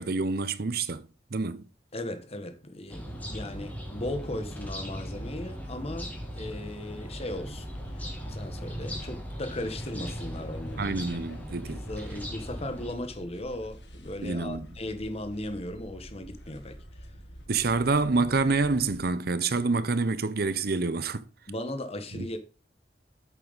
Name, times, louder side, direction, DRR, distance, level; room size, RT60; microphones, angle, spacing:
voice 1, 0.0-1.7 10.8-11.8 14.2-14.7 17.5-21.3 22.1-22.3, right 3 dB, 60° right, 0.8 m, -27 dB
voice 2, 1.9-7.7 7.9-11.0 11.7-16.8 21.5-22.4, left 1 dB, 35° left, 1.3 m, -37 dB
sound 1, 2.9-12.9, equal, 10° left, 2.6 m, -38 dB
sound 2, 7.3-19.0, equal, 80° left, 1.9 m, -47 dB
8.4 x 7.5 x 4.1 m
head